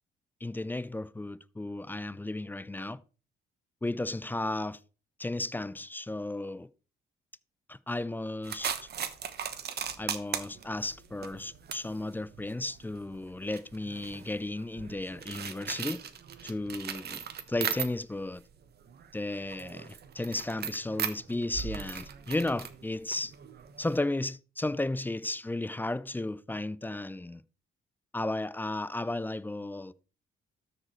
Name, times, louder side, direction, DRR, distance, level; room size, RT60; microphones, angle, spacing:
voice 1, 0.4-3.0 3.8-4.8 5.2-6.7 7.7-8.8 10.0-16.0 16.4-17.2 17.5-18.4 19.1-23.3 23.8-27.4 28.1-29.9, left 2 dB, 10° left, 0.4 m, -34 dB
sound 1, 8.4-18.3 18.6-24.0, right 8 dB, 55° right, 1.1 m, -39 dB
13.0 x 5.0 x 4.4 m
cardioid pair, 90°, 20 cm